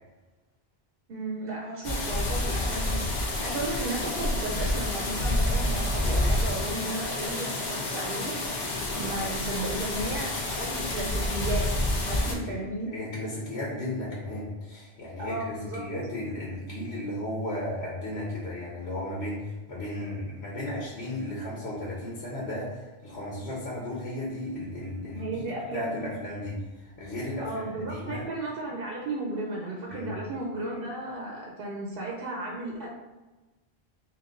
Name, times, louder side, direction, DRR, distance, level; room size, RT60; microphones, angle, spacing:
voice 1, 1.1-8.5 9.0-12.9 15.2-15.9 25.1-26.1 27.4-32.9, right 2 dB, 65° right, -2 dB, 0.8 m, -34 dB
sound 1, 1.8-12.3, left 1 dB, 50° left, 0.8 m, -29 dB
voice 2, 12.2-12.6 12.9-25.4 25.7-28.2 29.9-30.1, left 1 dB, 90° left, -5 dB, 1.2 m, -35 dB
3.9 x 2.6 x 3.7 m, 1.2 s
omnidirectional pair, 1.1 m